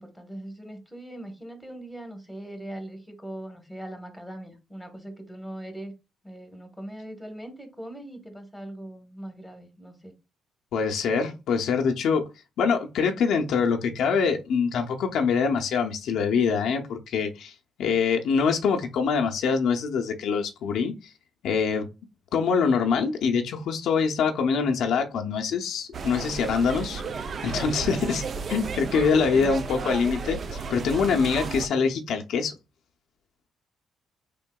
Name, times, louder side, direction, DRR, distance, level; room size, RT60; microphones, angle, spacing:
voice 1, 0.0-5.9 6.2-10.1 31.1-31.3, right 1 dB, ahead, 1.1 m, -40 dB
voice 2, 10.7-12.2 12.6-17.5 17.8-20.9 21.4-21.9 22.3-27.0 27.4-32.5, left 5 dB, 75° left, 0.6 m, -24 dB
sound 1, 25.9-31.7, right 5 dB, 50° right, 0.4 m, -33 dB
3.8 x 3.5 x 2.2 m
cardioid pair, 90°, 0 cm